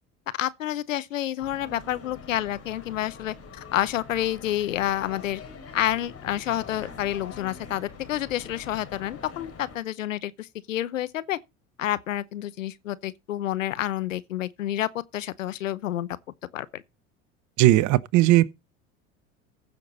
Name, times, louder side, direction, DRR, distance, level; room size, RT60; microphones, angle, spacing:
voice 1, 0.3-5.4 5.7-11.4 11.8-16.1 16.5-16.8, left 13 dB, 85° left, 0.8 m, -29 dB
sound 1, 1.4-9.8, left 5 dB, 40° left, 4.1 m, -44 dB
voice 2, 17.6-18.5, right 16 dB, 50° right, 0.8 m, -18 dB
15.0 x 6.7 x 4.1 m
hypercardioid pair, 75°, 38 cm